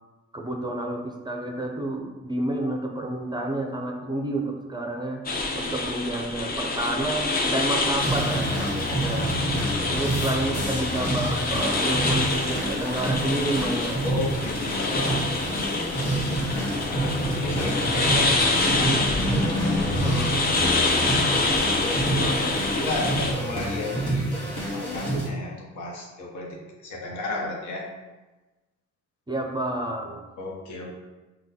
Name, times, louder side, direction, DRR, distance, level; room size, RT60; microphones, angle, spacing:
voice 1, 0.3-5.2 5.6-9.3 9.9-14.0 19.8-20.4 29.3-30.3, right 1 dB, 15° right, 1 dB, 0.5 m, -30 dB
sound 1, 5.3-23.3, left 2 dB, 30° left, 0.6 m, -27 dB
sound 2, 8.0-25.3, right 1 dB, 55° left, 1.4 m, -28 dB
voice 2, 14.0-16.2 16.7-18.7 21.8-22.4 22.7-24.4 24.7-27.8 30.4-30.9, left 2 dB, 75° left, -1 dB, 1.0 m, -33 dB
6.0 x 2.3 x 2.7 m, 1.1 s
cardioid pair, 90°, 30 cm